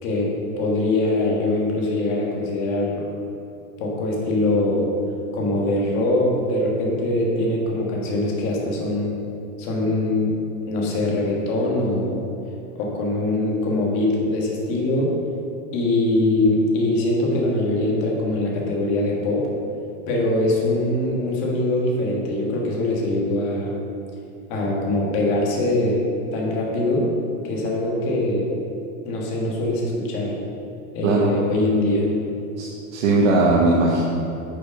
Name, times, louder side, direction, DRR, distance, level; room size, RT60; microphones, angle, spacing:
voice 1, 0.0-3.1 3.8-4.9 5.3-9.1 9.6-12.2 12.7-15.1 15.7-19.5 20.1-23.8 24.5-26.0 26.3-27.1 27.4-28.5 29.0-30.4 30.9-32.1, left 2 dB, 30° left, -2 dB, 1.4 m, -22 dB
voice 2, 32.6-34.0, right 2 dB, 50° right, -3 dB, 1.0 m, -19 dB
8.9 x 5.1 x 5.1 m, 2.8 s
supercardioid pair, 170°, 45 cm